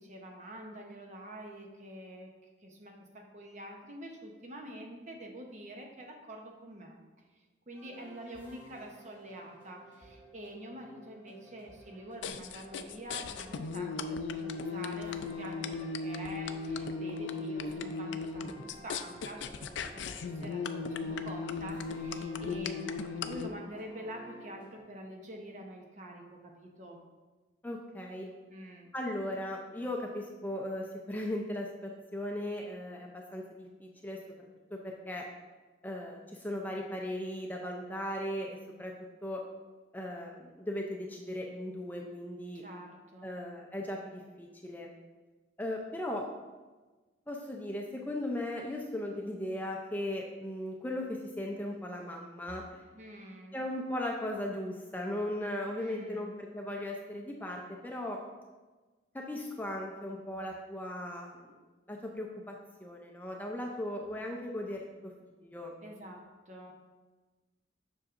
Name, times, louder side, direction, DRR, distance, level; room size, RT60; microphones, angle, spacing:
voice 1, 0.0-2.3 2.6-7.0 7.7-27.1 28.5-28.9 42.5-43.4 52.9-53.7 55.7-56.3 65.8-66.7, equal, 40° right, 2 dB, 0.8 m, -46 dB
sound 1, 7.7-24.8, right 1 dB, 10° right, 1.3 m, -53 dB
sound 2, 12.2-23.5, left 4 dB, 75° left, 0.4 m, -37 dB
voice 2, 27.6-28.3 28.9-35.2 35.8-38.9 39.2-39.4 39.9-42.6 43.2-44.9 45.6-46.2 47.3-52.8 53.5-58.2 59.1-61.5 61.9-64.8 65.4-65.7, left 1 dB, 10° left, 0 dB, 0.4 m, -37 dB
7.3 x 6.2 x 2.5 m, 1.3 s
head